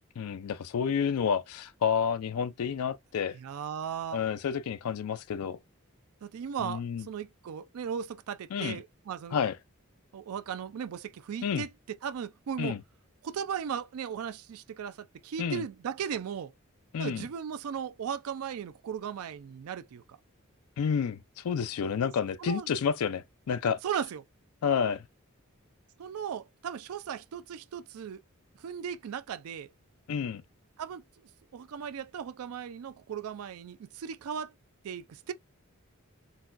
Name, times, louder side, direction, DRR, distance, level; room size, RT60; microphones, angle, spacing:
voice 1, 0.2-3.4 4.1-5.6 6.6-7.1 8.5-8.8 9.3-9.5 11.4-11.7 12.6-12.8 15.4-15.6 16.9-17.3 20.8-23.8 24.6-25.0 30.1-30.4, left 7 dB, 90° left, 0.4 m, -30 dB
voice 2, 3.3-4.2 6.2-9.4 10.1-11.7 12.0-12.8 13.2-16.5 17.0-20.0 21.8-22.0 22.4-22.7 23.8-24.2 26.0-28.2 28.6-29.7 30.8-31.0 31.5-34.5 34.8-35.3, right 8 dB, 85° right, 0.4 m, -37 dB
4.0 x 2.2 x 2.4 m
head